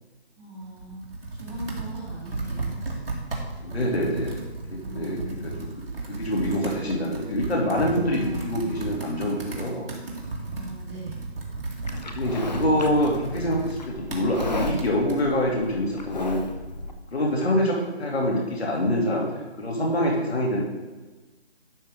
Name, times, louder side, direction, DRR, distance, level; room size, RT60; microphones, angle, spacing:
voice 1, 0.4-1.0 1.4-2.8 4.8-5.6 7.9-8.9 10.5-11.2, right 1 dB, ahead, -16 dB, 1.4 m, -40 dB
Computer keyboard, 0.6-15.2, right 3 dB, 60° right, 2.2 m, -34 dB
voice 2, 3.6-4.4 4.7-5.7 6.1-9.9 12.1-16.4 17.1-20.6, equal, 70° left, -2 dB, 3.0 m, -25 dB
Livestock farm animals working animals, 11.9-16.9, left 2 dB, 40° left, 0.8 m, -35 dB
12.0 x 5.8 x 3.8 m, 1.2 s
hypercardioid pair, 175°, 33 cm